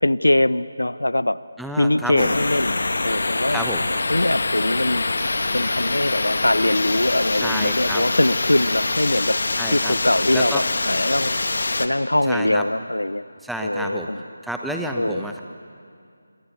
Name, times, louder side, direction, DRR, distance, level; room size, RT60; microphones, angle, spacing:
voice 1, 0.0-1.4 1.8-3.6 4.1-5.0 5.5-9.4 9.7-11.3 11.8-13.2 13.6-14.2 15.0-15.2, left 1 dB, 75° left, 18 dB, 0.7 m, -22 dB
voice 2, 1.6-2.3 3.5-3.9 7.3-8.0 9.6-10.0 10.3-10.6 12.2-12.7 13.4-14.1 14.4-15.4, right 1 dB, ahead, 2 dB, 1.1 m, -30 dB
sound 1, 2.2-11.9, left 2 dB, 55° left, 1.7 m, -24 dB
26.0 x 25.5 x 8.5 m, 2.4 s
figure-of-eight pair, 160°, 0 cm